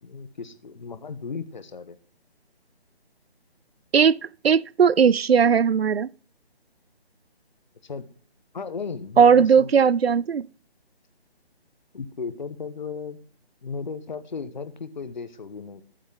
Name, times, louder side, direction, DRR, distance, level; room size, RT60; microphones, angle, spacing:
voice 1, 0.0-2.0 7.8-8.1 8.5-9.7 11.9-13.2 13.6-15.8, left 5 dB, 45° left, 1.2 m, -35 dB
voice 2, 4.4-6.1 9.2-10.4, right 6 dB, 70° right, 0.5 m, -18 dB
12.5 x 7.4 x 3.6 m
figure-of-eight pair, 150°, 32 cm